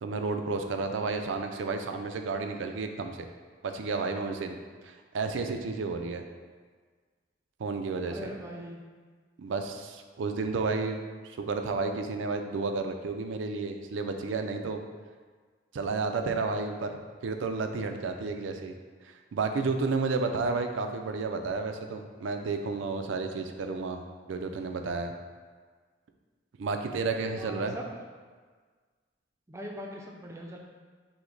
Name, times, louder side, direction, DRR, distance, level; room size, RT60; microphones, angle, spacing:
voice 1, 0.0-3.3 3.6-4.6 4.8-6.2 7.6-8.3 9.4-11.0 11.4-14.8 15.7-18.7 19.0-24.0 24.3-25.1 26.6-27.8, right 4 dB, 85° right, 6 dB, 0.4 m, -31 dB
voice 2, 8.1-8.8 27.4-27.8 29.5-30.6, equal, 15° right, 0 dB, 0.4 m, -41 dB
5.9 x 2.1 x 3.8 m, 1.5 s
head